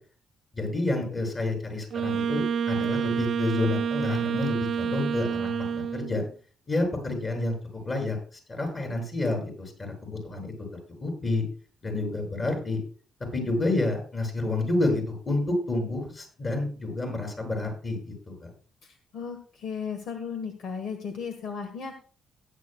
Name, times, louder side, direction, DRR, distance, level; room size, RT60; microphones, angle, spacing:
voice 1, 0.5-6.2 6.7-7.5 7.9-8.2 8.5-10.5 11.0-11.4 11.8-12.8 13.3-18.5, left 2 dB, 35° left, 2 dB, 7.1 m, -29 dB
Wind instrument woodwind instrument, 1.9-6.2, right 7 dB, 60° right, 0.4 m, -28 dB
voice 2, 18.8-21.9, left 6 dB, 70° left, 6 dB, 1.4 m, -35 dB
17.0 x 10.5 x 2.3 m, 0.40 s
cardioid pair, 90°, 0 cm